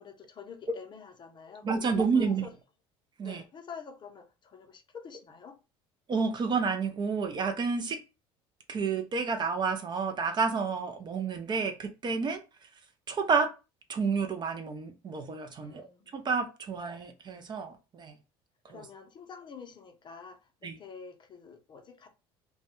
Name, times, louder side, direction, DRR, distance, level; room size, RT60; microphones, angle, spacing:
voice 1, 0.0-2.5 3.2-5.6 15.6-16.2 18.7-22.1, left 6 dB, 35° left, 0.6 m, -47 dB
voice 2, 1.6-2.5 3.2-3.4 6.1-8.0 8.7-12.4 13.1-13.5 13.9-15.9 16.1-18.1 18.7-18.9 20.6-20.8, right 5 dB, 35° right, 0.5 m, -30 dB
2.2 x 2.1 x 2.9 m
hypercardioid pair, 80°, 13 cm